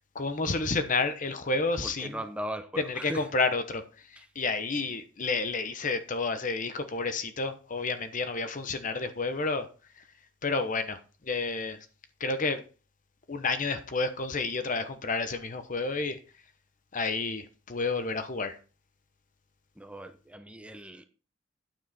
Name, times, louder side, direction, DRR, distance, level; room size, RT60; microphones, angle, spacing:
voice 1, 0.1-2.2 2.8-3.8 4.1-9.7 10.4-11.8 12.2-12.6 13.3-16.2 16.9-18.6, left 3 dB, 45° left, 1.0 m, -30 dB
voice 2, 1.8-3.3 4.2-4.3 19.8-21.0, right 1 dB, 5° right, 0.7 m, -39 dB
9.2 x 7.3 x 4.2 m
head